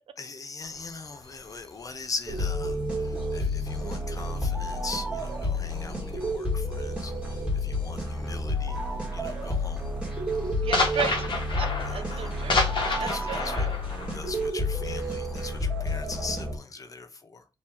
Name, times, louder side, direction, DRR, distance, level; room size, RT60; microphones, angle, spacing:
voice 1, 0.2-8.8 9.1-9.8 11.9-12.3 12.8-13.7 14.1-17.5, left 4 dB, 35° left, 0.7 m, -40 dB
sound 1, 0.6-4.5 4.8-8.2 8.5-8.9 9.2-15.6, left 3 dB, 55° left, 1.2 m, -32 dB
sound 2, 2.3-16.6, left 1 dB, 10° right, 1.6 m, -30 dB
voice 2, 10.6-12.7 13.0-13.8, right 6 dB, 75° right, 0.6 m, -35 dB
4.5 x 3.0 x 3.5 m
wide cardioid pair, 165°, 10 cm